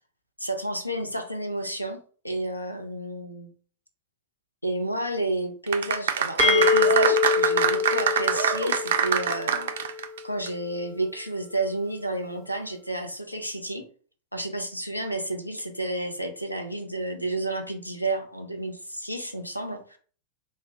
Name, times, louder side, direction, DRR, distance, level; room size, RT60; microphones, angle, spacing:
voice 1, 0.4-3.5 4.6-13.9 14.3-20.0, right 1 dB, 90° left, 5 dB, 0.5 m, -31 dB
sound 1, 5.7-10.2 10.5-10.6, right 8 dB, 60° right, 0.3 m, -24 dB
sound 2, 6.4-10.1, left 5 dB, 10° left, 0.6 m, -25 dB
2.1 x 2.0 x 3.7 m, 0.42 s
figure-of-eight pair, 90°, 0 cm